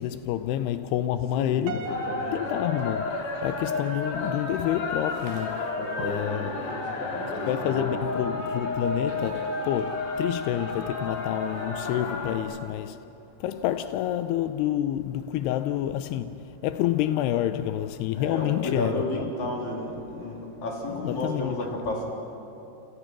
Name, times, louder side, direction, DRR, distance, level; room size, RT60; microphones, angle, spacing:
voice 1, 0.0-1.9 2.3-3.1 3.4-5.7 6.0-6.6 7.5-13.0 13.4-19.0 21.0-21.6, left 12 dB, 85° left, 11 dB, 2.7 m, -28 dB
voice 2, 1.4-2.4 5.8-8.0 18.1-22.1, left 2 dB, 45° left, -1 dB, 4.6 m, -33 dB
Piano, 1.7-3.9, right 3 dB, 85° right, 3.1 m, -39 dB
sound 1, 1.9-12.4, left 3 dB, 65° left, 4.8 m, -32 dB
30.0 x 27.0 x 6.1 m, 2.9 s
omnidirectional pair, 4.7 m